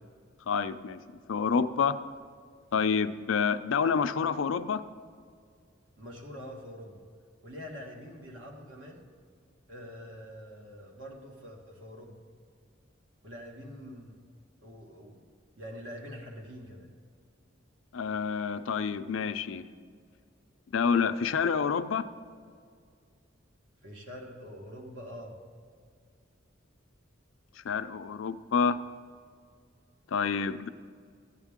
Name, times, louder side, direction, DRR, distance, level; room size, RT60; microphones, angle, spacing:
voice 1, 0.5-1.0 1.3-2.0 2.7-4.8 17.9-19.6 20.7-22.1 27.6-28.8 30.1-30.7, left 6 dB, 80° left, 11 dB, 0.4 m, -28 dB
voice 2, 6.0-7.0 7.4-9.1 9.7-12.2 13.2-14.2 14.6-15.2 15.6-16.9 23.8-25.4, equal, 65° right, 0 dB, 1.7 m, -45 dB
13.0 x 9.1 x 3.6 m, 2.1 s
head